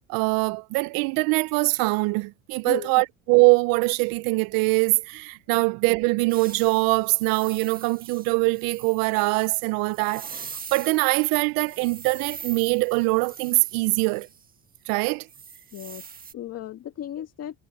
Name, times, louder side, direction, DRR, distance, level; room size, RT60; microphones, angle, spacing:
voice 1, 0.1-10.4 10.7-14.3 14.9-15.3, right 26 dB, 65° right, 0.6 m, -23 dB
voice 2, 2.6-3.0 5.5-5.6 15.7-17.6, left 11 dB, 40° left, 1.7 m, -36 dB
sound 1, 6.3-11.3 11.6-14.5 15.3-16.3, right 6 dB, 25° right, 1.7 m, -42 dB
cardioid pair, 130°, 37 cm